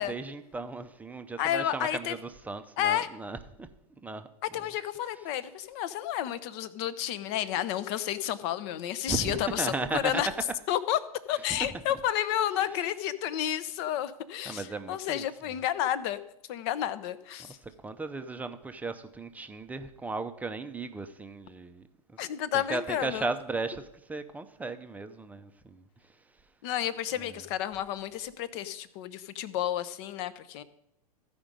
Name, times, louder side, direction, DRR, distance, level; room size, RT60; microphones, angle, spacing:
voice 1, 0.0-3.7 4.0-4.3 9.1-10.2 11.5-11.6 14.5-15.6 17.4-22.2 22.5-25.8 27.2-27.4, right 3 dB, 10° right, 8 dB, 0.5 m, -36 dB
voice 2, 1.4-2.1 2.8-3.1 4.5-10.3 10.7-11.0 11.3-16.2 16.5-17.6 22.2-23.2 26.6-30.6, left 11 dB, 45° left, 15 dB, 0.7 m, -31 dB
14.5 x 5.1 x 5.2 m, 0.83 s
figure-of-eight pair, 100°, 20 cm